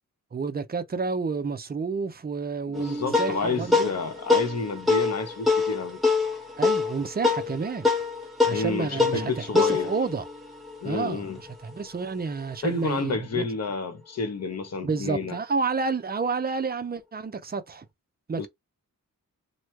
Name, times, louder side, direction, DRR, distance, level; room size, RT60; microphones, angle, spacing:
voice 1, 0.3-3.9 6.6-7.9 8.4-10.2 10.8-13.4 14.8-17.9 18.3-18.5, right 4 dB, 30° right, 0.5 m, -30 dB
voice 2, 2.7-6.0 8.5-9.9 10.8-11.4 12.6-15.4 18.4-18.5, left 4 dB, 50° left, 0.8 m, -30 dB
sound 1, 2.7-11.5, left 4 dB, ahead, 1.0 m, -26 dB
3.0 x 2.2 x 3.1 m
wide cardioid pair, 105°, 34 cm